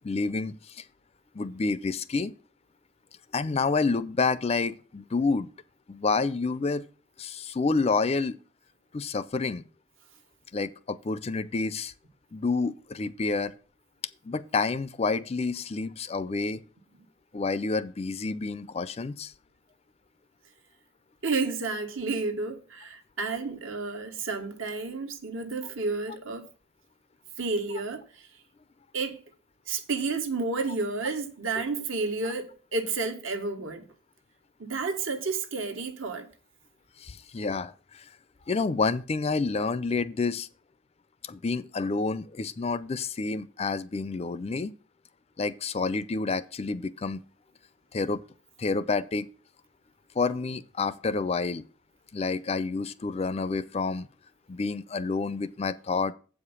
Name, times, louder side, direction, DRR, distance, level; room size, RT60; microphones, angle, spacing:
voice 1, 0.0-0.8 1.3-2.3 3.3-5.5 5.9-6.8 7.2-8.4 8.9-9.7 10.5-11.9 12.3-13.5 14.2-16.7 17.3-19.3 37.0-38.1 38.5-40.5 41.2-44.7 45.4-47.2 47.9-48.2 48.6-49.3 50.2-51.6 52.1-54.1 54.5-56.1, left 4 dB, 30° left, 0.4 m, -29 dB
voice 2, 21.2-26.5 27.4-28.0 28.9-29.2 29.7-33.8 34.6-36.3, right 3 dB, 75° right, 1.4 m, -31 dB
8.0 x 5.0 x 6.9 m
head